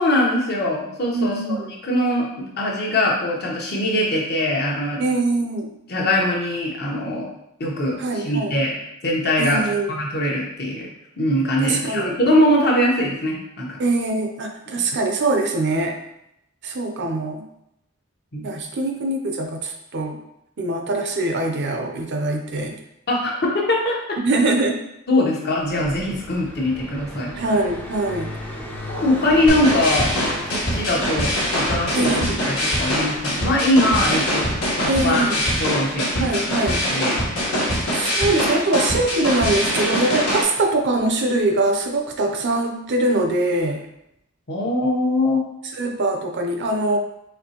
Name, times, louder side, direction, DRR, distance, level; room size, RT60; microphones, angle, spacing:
voice 1, 0.0-1.6 1.8-5.0 5.9-7.3 7.6-8.7 9.0-9.6 9.9-10.9 11.2-13.8 14.7-14.8 18.3-18.5 23.1-24.0 25.1-27.3 28.9-30.1 30.5-36.7 36.9-37.3 44.5-45.4, left 1 dB, 50° left, -2 dB, 1.0 m, -22 dB
voice 2, 1.1-1.7 5.0-5.7 8.0-8.6 9.4-9.9 11.6-12.2 13.8-16.0 16.6-17.4 18.4-20.2 20.6-22.8 24.2-24.8 27.3-28.3 31.9-32.4 34.8-35.4 36.2-36.8 37.9-43.8 45.8-47.0, right 2 dB, 55° right, 3 dB, 0.6 m, -23 dB
Car passing by, 25.6-36.2, left 1 dB, 10° left, 0.5 m, -36 dB
sound 1, 29.5-40.4, equal, 80° left, 1.4 m, -23 dB
4.3 x 3.1 x 2.9 m, 0.80 s
head